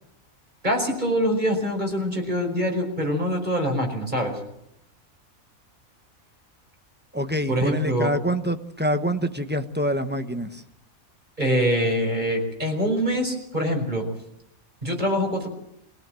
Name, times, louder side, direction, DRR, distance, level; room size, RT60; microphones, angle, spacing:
voice 1, 0.6-4.4 7.5-8.1 11.4-14.0 14.8-15.5, equal, 30° right, 2 dB, 5.4 m, -24 dB
voice 2, 7.1-10.6, equal, 10° right, 8 dB, 1.0 m, -26 dB
24.5 x 17.5 x 7.7 m, 0.79 s
omnidirectional pair, 1.5 m